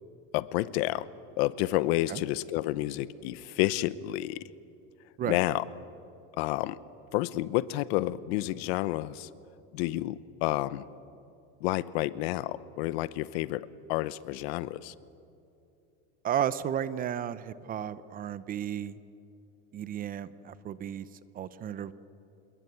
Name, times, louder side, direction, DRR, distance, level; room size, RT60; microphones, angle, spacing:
voice 1, 0.3-1.1 1.4-4.4 5.3-5.6 6.4-6.8 7.1-9.3 9.7-10.9 11.6-14.9, left 16 dB, 70° left, 17 dB, 0.9 m, -30 dB
voice 2, 16.2-19.0 19.7-21.1 21.3-21.9, right 9 dB, 25° right, 15 dB, 0.7 m, -33 dB
26.5 x 21.5 x 9.4 m, 2.6 s
cardioid pair, 155°, 33 cm